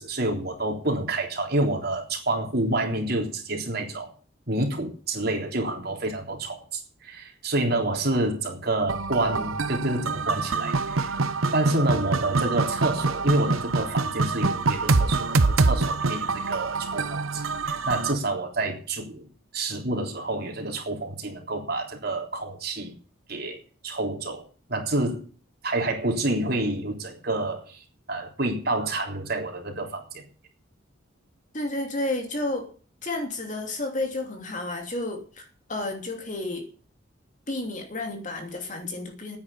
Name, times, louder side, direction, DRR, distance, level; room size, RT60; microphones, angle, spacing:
voice 1, 0.0-4.1 4.5-11.1 11.5-19.2 19.5-22.9 23.3-25.2 25.6-30.2, right 2 dB, 50° right, 2 dB, 3.6 m, -28 dB
sound 1, 8.9-18.1, right 3 dB, 85° right, 1.0 m, -25 dB
voice 2, 31.5-32.7 33.0-36.7 37.5-39.4, left 2 dB, 35° left, 4 dB, 2.9 m, -31 dB
9.7 x 9.5 x 10.0 m, 0.40 s
head